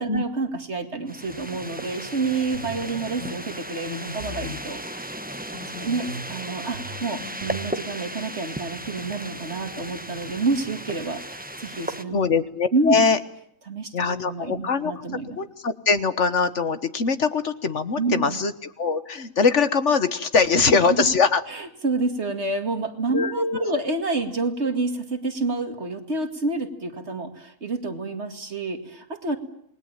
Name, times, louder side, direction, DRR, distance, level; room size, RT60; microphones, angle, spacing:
voice 1, 0.0-5.1 5.8-12.2 12.7-13.0 13.7-15.4 18.0-18.4 20.3-21.1 21.5-29.4, right 3 dB, 50° right, 6 dB, 2.5 m, -28 dB
sound 1, 1.1-12.0, right 1 dB, 5° right, 1.0 m, -36 dB
sound 2, 2.5-2.8 3.2-3.4 3.9-4.6 5.5-6.3 6.7-7.7, left 1 dB, 70° right, 3.4 m, -37 dB
voice 2, 12.1-13.2 13.9-21.4 23.1-23.8, left 5 dB, 60° left, 11 dB, 1.6 m, -22 dB
28.5 x 20.5 x 8.9 m, 0.70 s
omnidirectional pair, 1.4 m